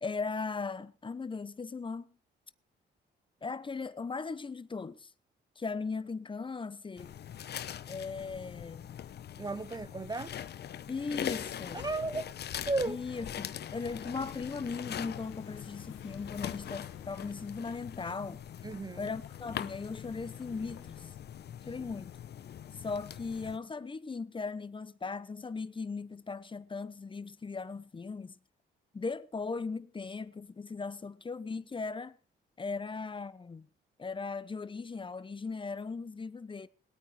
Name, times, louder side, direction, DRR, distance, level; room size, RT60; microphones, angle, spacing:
voice 1, 0.0-2.1 3.4-5.1 5.6-7.1 7.9-8.9 10.9-11.8 12.8-18.4 19.0-21.1 21.7-22.1 22.8-28.3 28.9-32.2 32.6-33.7 34.0-36.7, left 4 dB, 25° left, 0.9 m, -38 dB
sound 1, 7.0-23.6, left 10 dB, 55° left, 0.9 m, -42 dB
voice 2, 9.4-10.3 11.7-12.3 12.7-13.0 18.6-19.1, right 3 dB, 20° right, 0.6 m, -34 dB
sound 2, 13.1-21.1, left 10 dB, 80° left, 1.6 m, -55 dB
20.0 x 9.0 x 4.9 m
cardioid pair, 90°, 20 cm